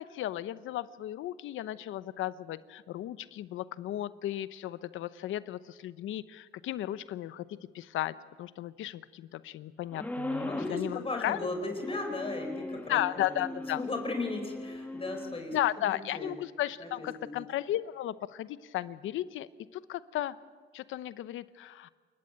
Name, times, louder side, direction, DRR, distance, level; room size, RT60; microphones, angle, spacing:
voice 1, 0.0-11.5 12.9-13.8 15.5-20.4 20.7-21.9, left 13 dB, 80° left, 15 dB, 0.9 m, -35 dB
sound 1, 9.9-10.8 11.8-15.4, left 1 dB, 10° left, 1.7 m, -39 dB
voice 2, 10.3-13.3 13.8-15.6 15.9-16.3 16.8-17.4, left 2 dB, 30° left, 4 dB, 4.6 m, -36 dB
28.0 x 14.5 x 8.9 m, 1.5 s
cardioid pair, 90°, 20 cm